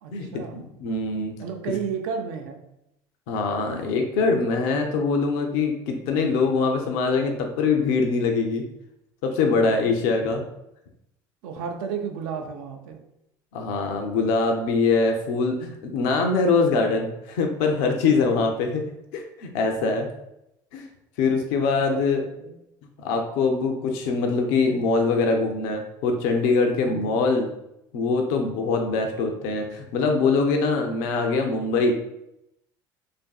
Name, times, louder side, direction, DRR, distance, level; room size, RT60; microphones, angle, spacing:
voice 1, 0.0-0.7 1.4-2.6 9.4-9.8 10.0-10.2 11.4-13.0 18.0-18.2 21.3-21.4 21.8-22.6 26.8-27.3, right 6 dB, 75° right, 4 dB, 0.5 m, -33 dB
voice 2, 0.5-1.3 3.3-8.6 9.2-10.4 13.5-18.8 19.1-20.1 20.7-20.9 21.2-22.2 23.0-27.5 27.9-31.9, left 4 dB, 75° left, 3 dB, 0.4 m, -23 dB
2.6 x 2.5 x 2.3 m, 0.83 s
hypercardioid pair, 80°, 11 cm